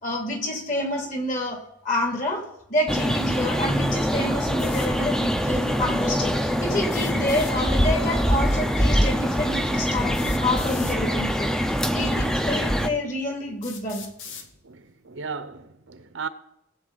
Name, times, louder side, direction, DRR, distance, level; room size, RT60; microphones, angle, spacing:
voice 1, 0.0-2.4 2.7-14.1, left 1 dB, 45° left, 2.8 m, -28 dB
sound 1, 2.9-12.9, equal, 5° left, 0.6 m, -24 dB
sound 2, 4.6-4.9 6.8-7.6 9.0-9.1 10.1-11.0 12.0-12.1 12.8-12.9 13.6-14.5, left 6 dB, 75° left, 1.3 m, -40 dB
voice 2, 14.6-16.3, right 5 dB, 80° right, 0.9 m, -36 dB
20.0 x 8.1 x 4.1 m
head